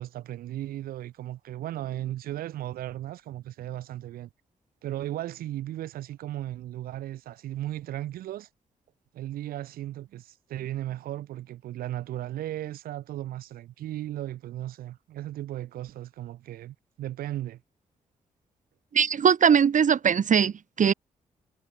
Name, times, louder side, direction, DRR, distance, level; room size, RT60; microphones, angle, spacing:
voice 1, 0.0-4.3 4.8-8.5 9.1-17.6, right 13 dB, 85° right, 4.6 m, -36 dB
voice 2, 18.9-20.9, right 7 dB, 60° right, 1.5 m, -21 dB
supercardioid pair, 45°, 15 cm